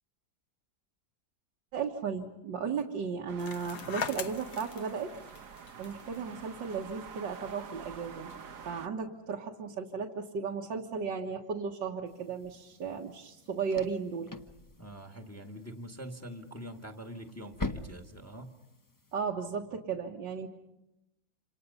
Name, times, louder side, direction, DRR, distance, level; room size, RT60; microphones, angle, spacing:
voice 1, 1.7-5.1 5.8-8.4 8.7-14.3 19.1-20.5, right 6 dB, 70° right, 0 dB, 2.1 m, -35 dB
sound 1, 3.3-8.9, right 7 dB, 50° right, 1.3 m, -47 dB
sound 2, 3.4-8.6, left 7 dB, 60° left, 1.5 m, -43 dB
sound 3, 12.1-19.2, left 2 dB, 30° left, 0.3 m, -45 dB
voice 2, 14.8-18.5, equal, 10° left, 5 dB, 1.4 m, -44 dB
27.5 x 27.0 x 5.5 m, 0.93 s
omnidirectional pair, 2.1 m